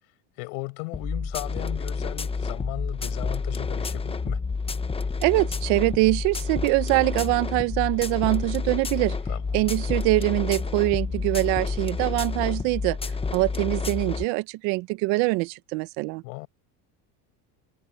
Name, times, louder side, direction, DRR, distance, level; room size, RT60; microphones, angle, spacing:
voice 1, 0.4-4.4 9.3-9.7 16.2-16.5, left 31 dB, 85° left, 7.7 m, -36 dB
sound 1, 0.9-14.3, left 4 dB, 15° left, 0.9 m, -29 dB
voice 2, 5.2-9.2 9.5-13.0 13.3-16.2, right 23 dB, 75° right, 1.1 m, -24 dB
cardioid pair, 120°, 43 cm